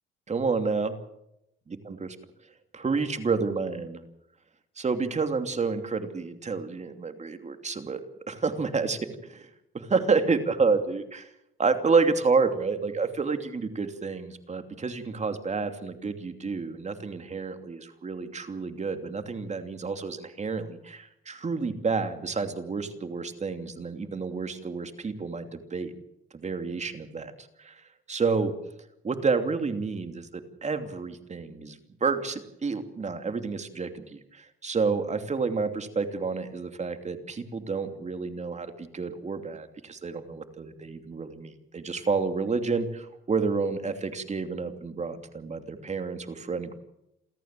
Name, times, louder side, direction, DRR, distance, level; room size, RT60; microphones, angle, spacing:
voice 1, 0.3-0.9 2.0-2.1 2.7-4.0 4.8-9.0 9.3-9.5 9.7-11.3 11.6-25.9 26.3-27.3 27.6-27.7 28.1-28.5 29.0-46.7, right 4 dB, 35° right, 8 dB, 2.8 m, -29 dB
28.5 x 14.0 x 7.6 m, 0.83 s
cardioid pair, 90°, 20 cm